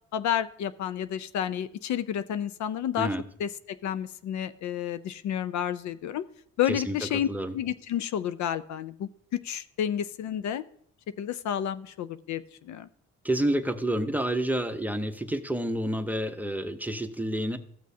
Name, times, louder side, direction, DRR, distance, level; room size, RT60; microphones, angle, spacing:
voice 1, 0.1-3.1 3.4-6.2 6.6-7.3 7.5-10.6 11.2-12.9, left 10 dB, 70° left, 13 dB, 0.5 m, -30 dB
voice 2, 13.2-17.6, right 1 dB, 5° right, 7 dB, 0.7 m, -29 dB
14.5 x 6.2 x 2.7 m, 0.65 s
cardioid pair, 90°, 30 cm